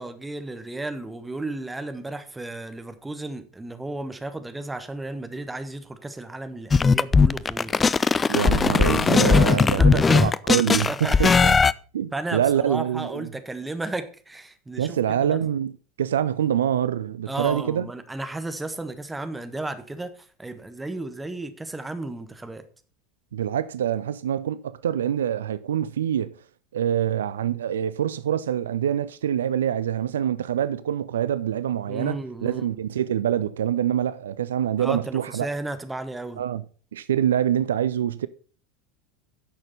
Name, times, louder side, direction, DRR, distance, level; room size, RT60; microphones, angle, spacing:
voice 1, 0.0-7.9 9.6-10.3 10.9-11.4 12.1-15.4 17.3-22.6 31.9-32.7 34.8-36.4, right 2 dB, 10° right, 1.3 m, -34 dB
sound 1, 6.7-11.7, left 5 dB, 20° left, 0.3 m, -18 dB
voice 2, 8.3-11.5 11.9-13.3 14.8-15.7 16.0-17.9 23.3-26.3 26.7-35.5 36.4-36.6 36.9-38.3, right 10 dB, 70° right, 0.4 m, -25 dB
10.5 x 6.5 x 5.4 m
figure-of-eight pair, 80°, 0 cm